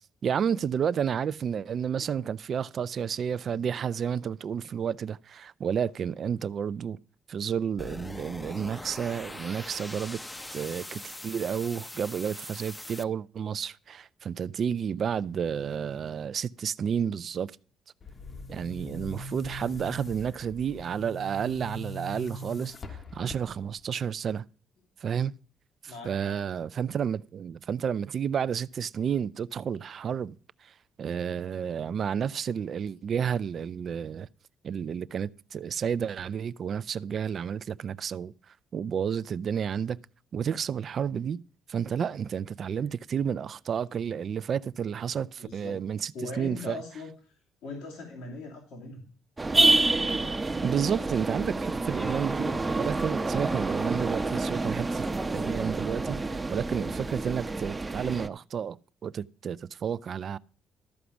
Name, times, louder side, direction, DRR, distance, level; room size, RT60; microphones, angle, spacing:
voice 1, 0.2-7.0 7.3-10.2 10.5-17.5 18.5-24.4 25.0-25.3 25.8-30.4 30.6-30.7 31.0-34.3 34.6-38.3 38.7-40.0 40.3-41.4 41.7-46.8 50.4-58.8 59.0-60.4, right 7 dB, 55° right, 0.4 m, -31 dB
sound 1, 7.8-13.0, left 1 dB, 15° left, 0.7 m, -41 dB
Boom, 18.0-23.8, left 1 dB, 45° left, 1.2 m, -41 dB
voice 2, 25.8-26.3 45.4-45.8 46.1-47.3 47.6-49.1, left 2 dB, 85° left, 2.8 m, -40 dB
sound 2, 49.4-58.3, right 2 dB, 25° right, 0.8 m, -28 dB
13.0 x 4.9 x 7.0 m
supercardioid pair, 60°, 0 cm